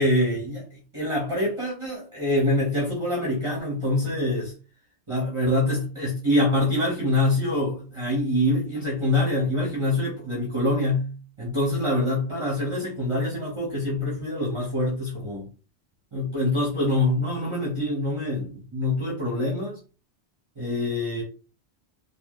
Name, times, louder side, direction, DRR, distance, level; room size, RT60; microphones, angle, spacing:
voice 1, 0.0-4.5 5.1-11.1 11.4-15.4 16.1-19.8 20.6-21.2, left 1 dB, 25° right, -4 dB, 1.2 m, -25 dB
4.2 x 2.6 x 3.1 m, 0.35 s
omnidirectional pair, 1.2 m